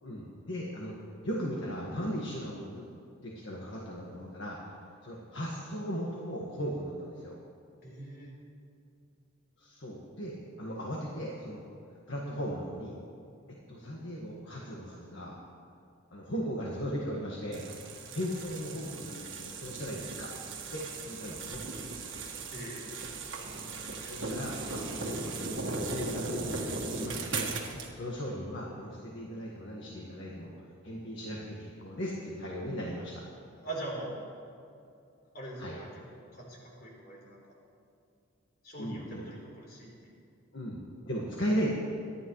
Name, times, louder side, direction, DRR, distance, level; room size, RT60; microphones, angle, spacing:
voice 1, 0.0-0.9 1.2-2.8 3.2-4.8 5.0-7.4 9.6-11.6 12.1-13.0 13.7-15.4 16.1-17.6 18.1-20.3 20.7-21.6 24.0-27.5 27.9-33.2 35.6-35.8 38.8-39.2 40.5-41.7, equal, 65° left, -3 dB, 1.6 m, -37 dB
voice 2, 7.8-8.3 22.5-22.9 33.6-34.1 35.3-35.9 36.3-37.6 38.6-40.1, right 2 dB, 45° left, -3 dB, 3.8 m, -42 dB
sound 1, 17.5-27.9, right 3 dB, 60° right, 1.7 m, -38 dB
23.5 x 11.5 x 3.2 m, 2.5 s
head